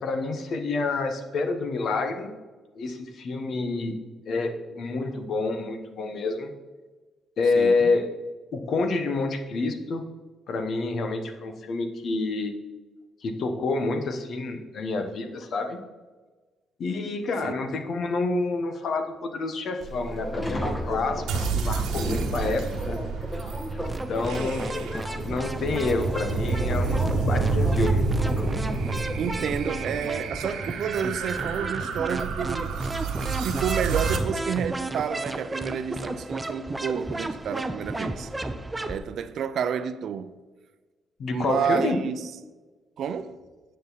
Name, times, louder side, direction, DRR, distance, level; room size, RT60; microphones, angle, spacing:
voice 1, 0.0-2.3 2.7-4.0 4.3-6.5 7.4-8.1 8.5-10.0 10.5-12.5 13.2-15.8 16.8-23.0 24.1-24.7 25.1-28.1 41.2-42.0, left 3 dB, 60° left, 1.1 m, -28 dB
voice 2, 7.6-7.9 17.4-17.7 28.9-32.7 33.4-38.3 38.9-40.4 41.3-42.3 43.0-43.4, right 7 dB, 65° right, 0.6 m, -30 dB
Subway metro underground, 19.8-29.8, equal, 10° left, 1.3 m, -34 dB
sound 1, 21.3-34.2, right 4 dB, 85° right, 1.1 m, -29 dB
sound 2, 23.8-39.0, right 2 dB, 15° right, 0.6 m, -34 dB
9.5 x 6.5 x 4.1 m
cardioid pair, 90°, 0 cm